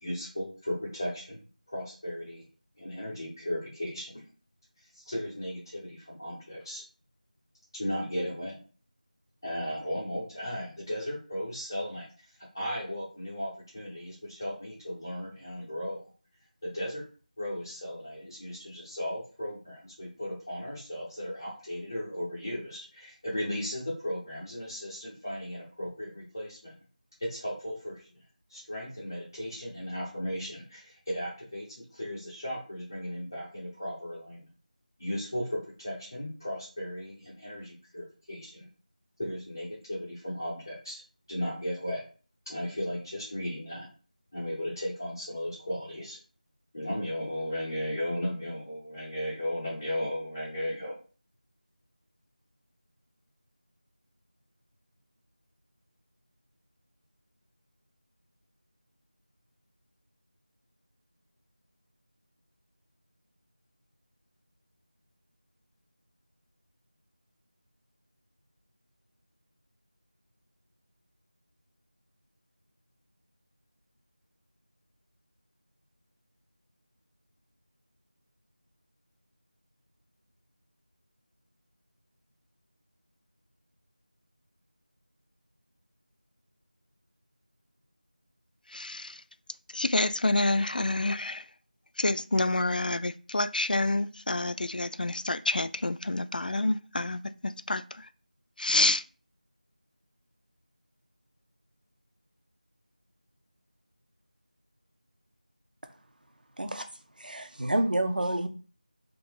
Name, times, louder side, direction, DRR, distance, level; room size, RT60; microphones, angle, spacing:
voice 1, 0.0-2.5 2.8-4.2 4.9-6.8 7.7-8.6 9.4-12.1 12.5-16.1 16.6-17.1 17.4-26.7 27.2-28.0 28.5-34.4 35.0-38.7 39.2-41.0 41.3-42.0 42.5-43.9 44.3-46.2 46.7-50.9, equal, 25° left, 1.0 m, -36 dB
voice 2, 88.7-89.2 89.7-91.4 92.0-97.8 98.6-99.0, left 2 dB, 85° left, 0.4 m, -28 dB
voice 3, 107.2-108.5, right 1 dB, 80° right, 0.8 m, -28 dB
3.7 x 2.5 x 4.5 m
figure-of-eight pair, 180°, 5 cm